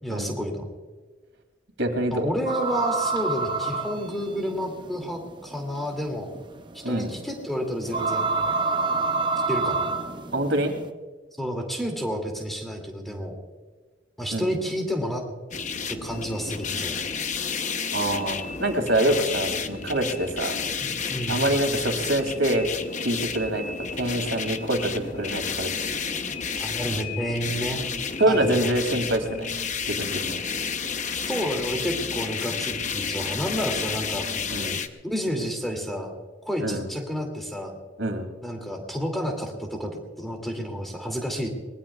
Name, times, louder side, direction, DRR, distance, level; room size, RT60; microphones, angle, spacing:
voice 1, 0.0-0.7 2.1-6.3 6.7-8.3 9.5-9.8 11.4-13.4 14.2-15.2 15.9-17.0 20.8-21.4 26.6-27.9 28.3-28.7 31.1-34.3 35.0-36.2 36.4-37.8 38.4-41.5, equal, ahead, 2 dB, 2.5 m, -30 dB
voice 2, 1.8-2.3 6.8-7.1 10.3-10.7 14.3-14.5 17.9-20.6 21.3-22.7 23.0-23.6 23.9-25.7 28.2-29.5 29.9-30.4 34.5-34.8 36.6-36.8 38.0-38.2, right 1 dB, 70° right, 4 dB, 2.7 m, -25 dB
sound 1, 2.5-10.9, right 3 dB, 25° right, 0.6 m, -28 dB
sound 2, 15.5-34.9, left 6 dB, 40° left, 0.8 m, -31 dB
23.0 x 20.5 x 2.4 m, 1.3 s
head